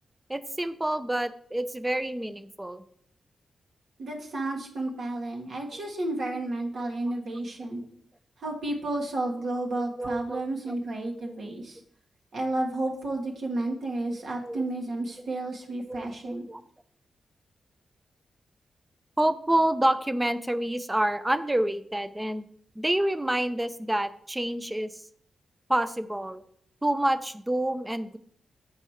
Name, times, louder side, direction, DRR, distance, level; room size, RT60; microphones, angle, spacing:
voice 1, 0.3-2.8 6.8-7.1 9.7-10.4 10.7-10.8 14.4-14.6 15.9-16.1 16.5-16.6 19.2-22.5 22.8-24.9 25.7-26.4 26.8-28.2, right 1 dB, 15° right, 13 dB, 0.5 m, -28 dB
voice 2, 4.0-7.8 8.4-11.8 12.3-16.5, right 2 dB, 70° right, 0 dB, 1.6 m, -32 dB
6.4 x 4.3 x 4.9 m, 0.63 s
cardioid pair, 70°, 0 cm